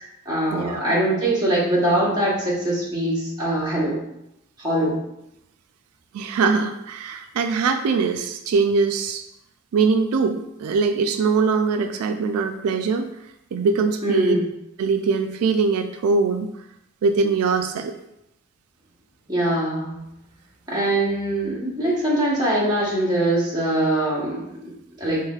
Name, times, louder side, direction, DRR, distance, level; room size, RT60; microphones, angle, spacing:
voice 1, 0.0-4.0 4.6-5.0 14.0-14.4 19.3-20.0 20.7-24.4 25.0-25.2, right 1 dB, 20° right, -7 dB, 1.1 m, -22 dB
voice 2, 0.5-0.8 6.1-9.2 9.7-13.1 13.5-14.4 14.8-16.5 17.0-17.9, right 4 dB, 85° right, 7 dB, 0.3 m, -22 dB
4.7 x 3.5 x 2.4 m, 0.85 s
head